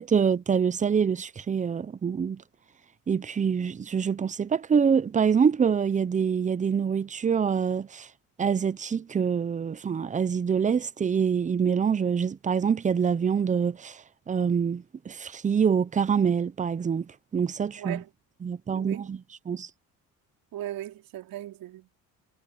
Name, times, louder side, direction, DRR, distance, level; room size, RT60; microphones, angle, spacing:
voice 1, 0.0-2.4 3.1-8.1 8.4-18.0 18.4-19.7, right 6 dB, 20° right, 0.6 m, -25 dB
voice 2, 17.8-18.1 18.7-19.1 20.5-21.9, right 13 dB, 70° right, 4.2 m, -37 dB
cardioid pair, 125°, 36 cm